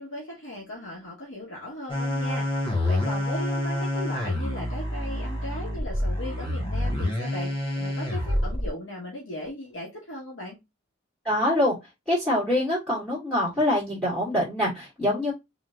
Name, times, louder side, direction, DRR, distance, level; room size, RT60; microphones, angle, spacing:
voice 1, 0.0-10.6, left 1 dB, 75° left, 2.2 m, -37 dB
sound 1, 1.9-8.7, left 1 dB, 25° left, 1.7 m, -27 dB
voice 2, 11.2-11.8 12.1-15.3, left 1 dB, 5° left, 2.4 m, -24 dB
4.1 x 3.8 x 2.6 m
head